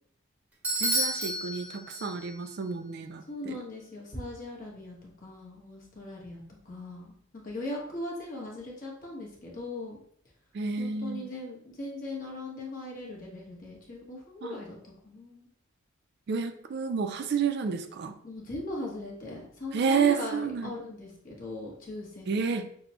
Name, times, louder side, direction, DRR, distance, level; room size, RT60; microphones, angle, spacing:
Bell / Doorbell, 0.6-2.5, right 1 dB, 5° right, 0.8 m, -31 dB
voice 1, 0.8-3.6 10.5-11.3 14.4-14.6 16.3-18.2 19.7-20.7 22.3-22.7, right 6 dB, 50° right, 8 dB, 0.3 m, -30 dB
voice 2, 3.3-10.0 10.8-15.5 18.2-22.4, left 2 dB, 40° left, -2 dB, 1.1 m, -39 dB
5.9 x 2.1 x 2.8 m, 0.63 s
head